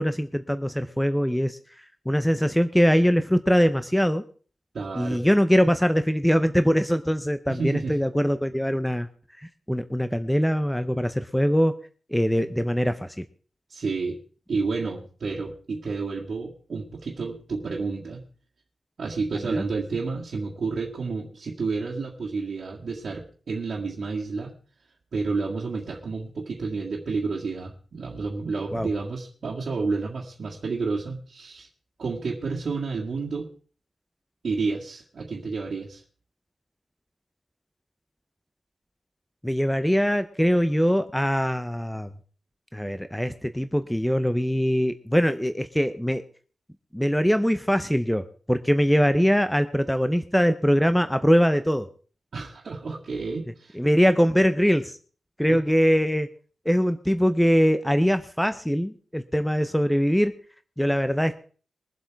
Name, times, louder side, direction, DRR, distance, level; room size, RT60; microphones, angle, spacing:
voice 1, 0.0-1.6 2.1-4.2 4.9-9.1 9.4-11.7 12.1-13.2 19.5-19.6 28.7-28.9 39.4-42.1 42.7-46.2 46.9-48.2 48.5-51.9 53.8-55.0 55.4-56.3 56.7-60.3 60.8-61.3, equal, 5° left, 10 dB, 0.6 m, -22 dB
voice 2, 4.7-5.2 7.5-8.0 13.7-14.2 14.5-18.2 19.0-24.5 25.1-31.7 32.0-33.5 34.4-36.0 52.3-53.8 55.4-55.6, right 4 dB, 55° right, -3 dB, 2.0 m, -30 dB
22.5 x 7.8 x 4.6 m, 0.41 s
wide cardioid pair, 170°, 0 cm